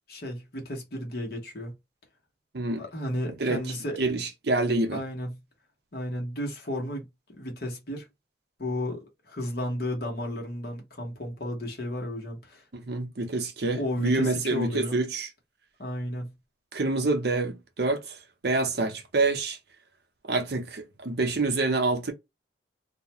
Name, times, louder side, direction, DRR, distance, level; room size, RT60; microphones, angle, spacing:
voice 1, 0.1-1.7 2.8-4.0 4.9-5.3 5.9-8.0 8.6-12.6 13.7-15.0 15.8-16.3, left 1 dB, 55° left, 0.9 m, -33 dB
voice 2, 3.4-3.7 4.0-5.0 12.7-15.3 16.7-18.2 18.4-19.6 20.3-22.1, right 3 dB, 60° right, 0.6 m, -27 dB
2.4 x 2.1 x 2.9 m
head